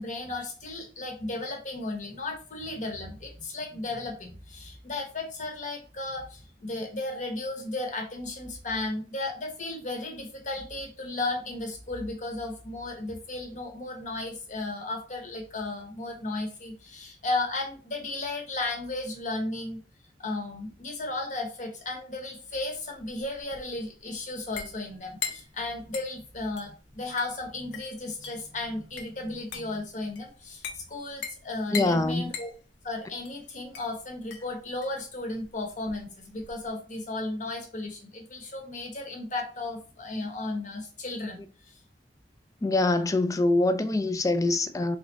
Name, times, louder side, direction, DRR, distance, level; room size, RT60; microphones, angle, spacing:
voice 1, 0.0-19.8 20.2-32.5 32.8-41.8, left 2 dB, 45° left, 1.0 m, -34 dB
sound 1, 22.7-36.7, left 6 dB, 85° left, 0.7 m, -42 dB
voice 2, 31.7-32.3 42.6-45.0, left 2 dB, 20° left, 0.4 m, -24 dB
3.7 x 3.0 x 3.2 m
head